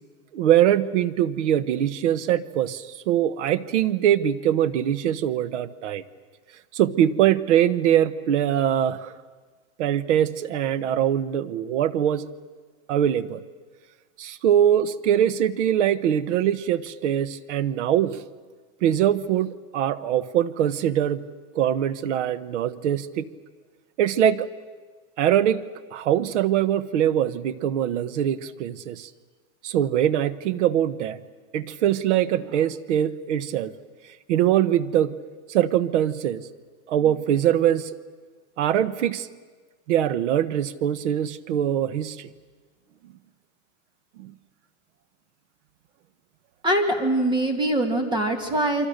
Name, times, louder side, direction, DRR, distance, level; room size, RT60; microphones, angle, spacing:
voice 1, 0.3-6.0 6.7-9.1 9.8-12.3 12.9-13.4 14.2-18.2 18.8-21.2 21.5-23.3 24.0-24.5 25.2-25.6 25.9-29.1 29.6-31.2 31.5-33.7 34.3-35.2 35.5-36.5 36.9-37.9 38.6-39.3 39.9-42.3 44.2-44.3, right 10 dB, 75° right, 16 dB, 1.2 m, -22 dB
voice 2, 46.6-48.9, right 1 dB, 15° right, 5 dB, 2.4 m, -23 dB
28.0 x 24.5 x 6.7 m, 1.4 s
supercardioid pair, 155°, 35 cm